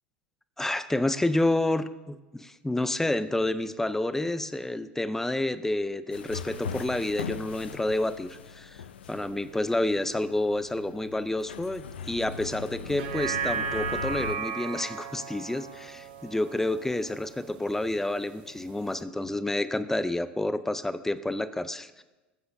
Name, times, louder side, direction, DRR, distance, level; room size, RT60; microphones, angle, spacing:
voice 1, 0.6-8.8 9.1-22.0, left 1 dB, 5° left, 13 dB, 0.6 m, -29 dB
sound 1, 6.1-14.4, left 6 dB, 75° left, 0.5 m, -40 dB
sound 2, 12.9-17.4 17.9-18.0, right 6 dB, 65° right, 1.1 m, -34 dB
18.5 x 7.9 x 2.7 m, 1.1 s
hypercardioid pair, 80°, 6 cm